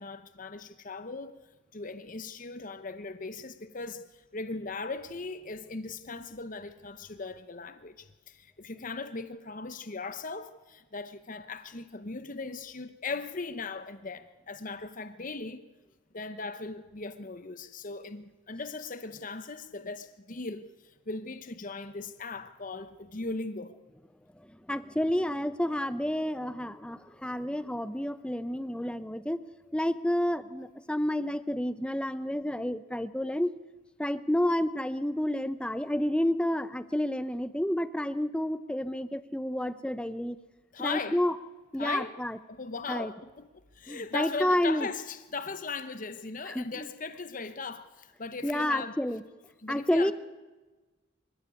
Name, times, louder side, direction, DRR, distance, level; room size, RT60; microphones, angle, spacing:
voice 1, 0.0-1.4 1.7-15.6 16.1-23.7 40.7-41.2 41.8-42.2 42.5-49.0 49.6-50.1, left 3 dB, 40° left, 0.9 m, -38 dB
voice 2, 24.5-29.4 29.7-33.5 34.0-40.4 40.8-41.4 41.7-42.4 42.9-43.1 43.9-44.9 46.5-46.9 48.4-49.2 49.7-50.1, left 1 dB, 5° left, 0.7 m, -30 dB
25.5 x 14.5 x 8.4 m
head